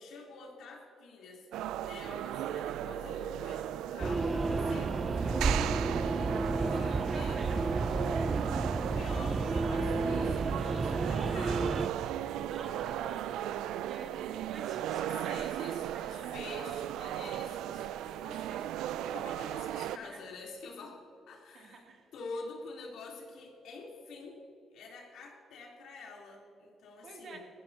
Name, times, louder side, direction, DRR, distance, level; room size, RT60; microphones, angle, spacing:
voice 1, 0.0-1.5 1.8-5.8 6.5-7.4 8.7-11.8 15.0-21.0 21.3-21.8 22.1-24.4 24.7-27.4, left 3 dB, 80° left, -2 dB, 3.6 m, -47 dB
sound 1, 1.5-20.0, right 11 dB, 90° right, 0.4 m, -37 dB
sound 2, 4.0-11.9, right 3 dB, 30° right, 0.5 m, -31 dB
voice 2, 6.7-7.7 12.5-13.3 13.8-16.3 20.0-20.2 21.5-22.1 27.0-27.4, right 4 dB, 60° right, 1 dB, 2.9 m, -49 dB
20.0 x 15.0 x 2.9 m, 2.7 s
cardioid pair, 90°, 0 cm